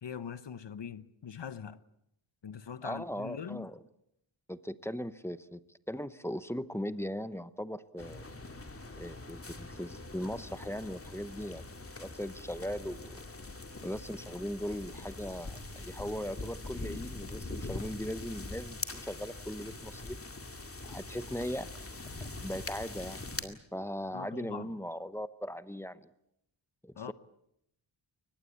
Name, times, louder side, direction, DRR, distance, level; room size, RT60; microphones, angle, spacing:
voice 1, 0.0-1.8 2.4-3.7 24.1-24.7 27.0-27.1, left 7 dB, 60° left, 1.0 m, -42 dB
voice 2, 2.8-3.8 4.5-8.4 9.0-11.7 12.0-13.2 13.8-20.2 20.9-21.7 22.4-26.1 26.8-27.1, equal, 5° left, 0.8 m, -39 dB
sound 1, 8.0-23.4, left 2 dB, 30° left, 2.1 m, -43 dB
23.5 x 20.0 x 8.5 m
wide cardioid pair, 125°, 48 cm